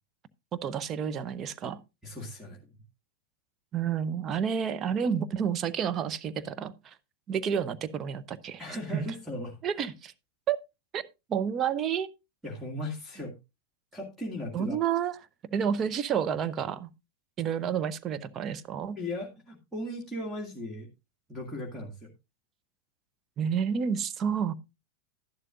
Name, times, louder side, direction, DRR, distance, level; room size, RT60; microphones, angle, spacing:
voice 1, 0.5-1.8 3.7-6.9 7.3-8.6 8.9-9.0 9.6-10.1 10.5-10.6 10.9-11.0 11.3-12.1 14.5-15.1 15.5-16.9 17.4-19.0 23.4-24.5, right 7 dB, 30° right, 0.7 m, -30 dB
voice 2, 2.0-2.6 8.6-9.6 12.4-13.4 13.9-14.8 19.0-20.9 21.3-22.1, left 1 dB, ahead, 2.0 m, -37 dB
12.0 x 11.0 x 2.5 m
figure-of-eight pair, 90°, 0 cm